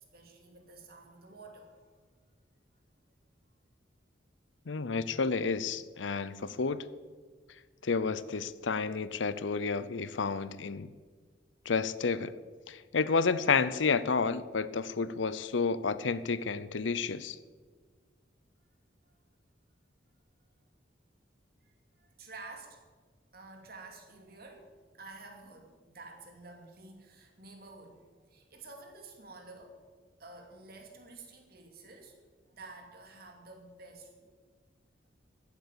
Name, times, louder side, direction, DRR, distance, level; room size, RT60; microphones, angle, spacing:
voice 1, 0.1-2.1 21.6-21.7 22.0-22.8 23.3-29.8 30.2-32.2 32.5-34.3, right 3 dB, 55° right, 2 dB, 2.6 m, -50 dB
voice 2, 4.7-6.8 7.8-10.9 11.7-12.3 12.7-17.4, left 5 dB, 85° left, 16 dB, 0.7 m, -30 dB
15.0 x 8.4 x 8.6 m, 1.5 s
head